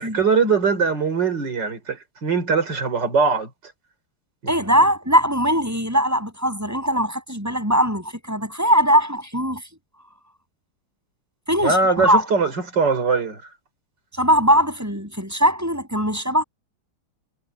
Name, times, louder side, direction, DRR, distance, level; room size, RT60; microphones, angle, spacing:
voice 1, 0.0-3.5 11.6-13.4, right 4 dB, 50° right, 4.5 m, -21 dB
voice 2, 4.5-9.6 11.5-12.2 14.1-16.4, equal, 5° right, 7.4 m, -20 dB
omnidirectional pair, 2.4 m